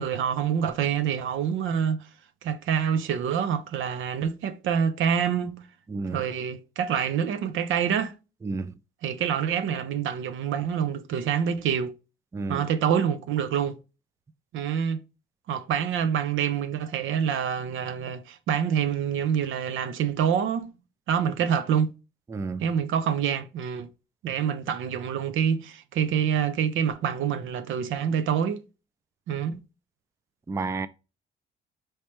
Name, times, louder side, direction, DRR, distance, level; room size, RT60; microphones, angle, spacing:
voice 1, 0.0-2.1 2.4-5.6 6.1-8.1 9.0-11.9 12.5-13.8 14.5-15.0 15.5-20.7 21.1-21.9 22.6-23.9 24.2-28.6 29.3-29.6, right 8 dB, 80° right, 0.6 m, -26 dB
voice 2, 5.9-6.2 8.4-8.7 12.3-12.7 22.3-22.7 30.5-30.9, right 3 dB, 15° right, 0.3 m, -31 dB
4.4 x 3.2 x 3.0 m
cardioid pair, 90°, 20 cm